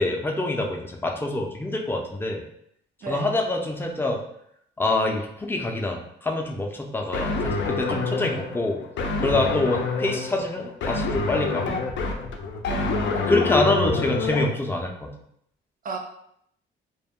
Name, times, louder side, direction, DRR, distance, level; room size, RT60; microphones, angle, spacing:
voice 1, 0.0-2.4 3.1-4.2 4.8-8.8 9.2-11.8 13.2-15.1, left 2 dB, 10° left, 1 dB, 0.5 m, -26 dB
sound 1, 7.1-14.5, left 4 dB, 65° left, 0.4 m, -27 dB
voice 2, 7.9-8.5 12.7-13.3 15.8-16.0, right 5 dB, 45° right, 3 dB, 0.5 m, -35 dB
2.2 x 2.1 x 3.5 m, 0.72 s
cardioid pair, 90°, 20 cm